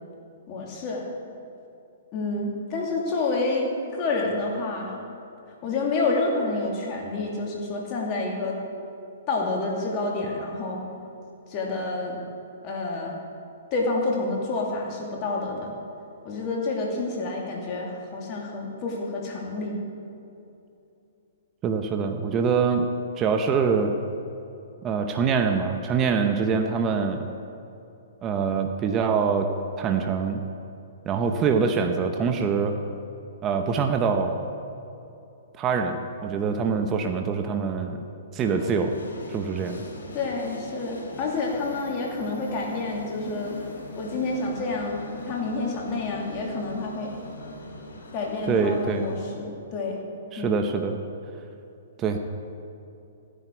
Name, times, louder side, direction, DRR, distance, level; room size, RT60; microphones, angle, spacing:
voice 1, 0.5-1.1 2.1-5.0 5.6-8.6 9.3-10.8 11.5-12.2 12.6-13.2 13.7-15.7 16.2-19.8 40.1-43.6 44.0-47.1 48.1-50.0 50.4-50.6, left 3 dB, 35° left, -1 dB, 2.5 m, -28 dB
voice 2, 21.6-22.9 23.2-23.9 24.8-27.3 28.2-29.5 29.8-30.4 31.1-32.8 33.4-34.4 35.6-38.0 38.3-38.9 39.3-39.8 48.5-49.1 50.3-51.0 52.0-52.2, right 5 dB, 25° right, 5 dB, 0.8 m, -24 dB
sound 1, 38.4-49.3, left 1 dB, 80° left, 3.2 m, -41 dB
15.5 x 10.0 x 4.6 m, 2.8 s
hypercardioid pair, 140°, 0 cm